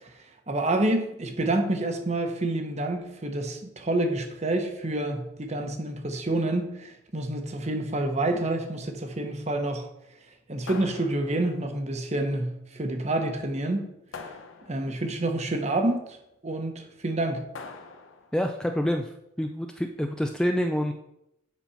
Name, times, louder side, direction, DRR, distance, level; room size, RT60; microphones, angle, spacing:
voice 1, 0.5-9.9 10.5-13.9 14.7-16.2 16.4-17.4, right 2 dB, 35° right, 5 dB, 1.0 m, -28 dB
sound 1, 10.7-11.7 14.1-15.1 17.5-18.4, left 4 dB, 85° left, 0.8 m, -43 dB
voice 2, 18.3-20.9, equal, 5° left, 4 dB, 0.4 m, -27 dB
8.4 x 4.2 x 5.7 m, 0.83 s
head